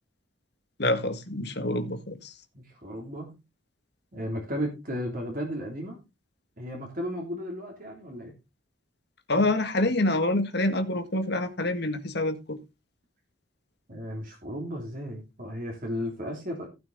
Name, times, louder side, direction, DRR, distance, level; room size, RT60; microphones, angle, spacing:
voice 1, 0.8-2.3 9.3-12.6, left 2 dB, 55° left, 1.6 m, -26 dB
voice 2, 2.5-3.3 4.1-6.0 6.6-8.3 13.9-16.7, equal, 45° right, 3.1 m, -34 dB
16.0 x 6.1 x 4.0 m
head